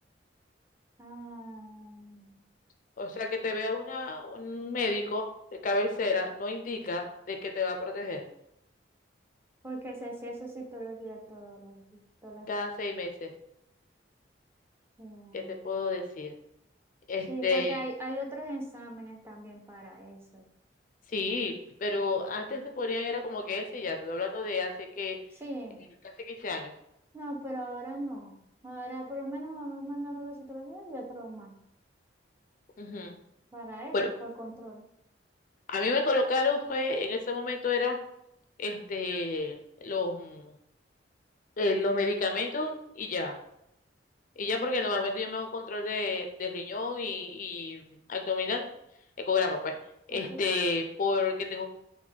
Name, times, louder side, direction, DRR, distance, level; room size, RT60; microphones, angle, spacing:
voice 1, 1.0-2.4 9.6-12.5 15.0-15.6 17.3-20.5 25.4-25.8 27.1-28.4 28.6-31.5 33.5-34.8 50.1-50.4, right 1 dB, 15° right, 0 dB, 0.5 m, -40 dB
voice 2, 3.0-5.3 5.6-8.2 12.5-13.3 15.3-16.3 17.1-17.8 21.1-21.5 21.8-25.2 26.3-26.7 32.8-33.2 33.9-34.1 35.7-38.0 38.6-40.5 41.6-43.4 44.4-48.7 49.2-49.8 50.1-51.7, left 3 dB, 45° left, 4 dB, 0.4 m, -31 dB
3.9 x 2.1 x 4.4 m, 0.79 s
head